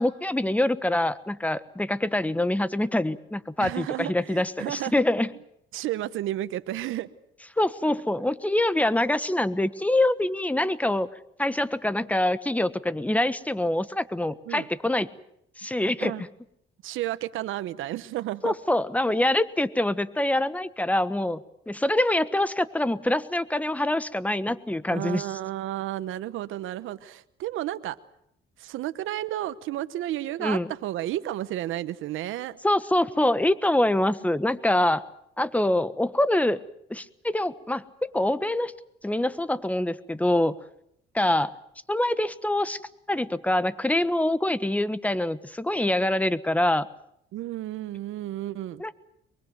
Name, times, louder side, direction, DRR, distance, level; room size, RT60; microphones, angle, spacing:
voice 1, 0.0-5.3 7.6-11.1 11.4-15.1 15.6-16.2 18.4-25.3 30.4-30.7 32.6-35.0 35.4-36.6 36.9-38.7 39.0-40.5 41.1-41.5 41.9-42.8 43.1-46.9 48.8-48.9, left 1 dB, 5° left, 15 dB, 1.3 m, -25 dB
voice 2, 3.6-5.0 5.7-7.1 14.5-14.7 16.0-16.2 16.8-18.5 24.9-28.0 28.6-32.6 47.3-48.8, right 14 dB, 85° right, 13 dB, 1.1 m, -32 dB
23.5 x 23.0 x 7.9 m, 0.74 s
cardioid pair, 90°, 20 cm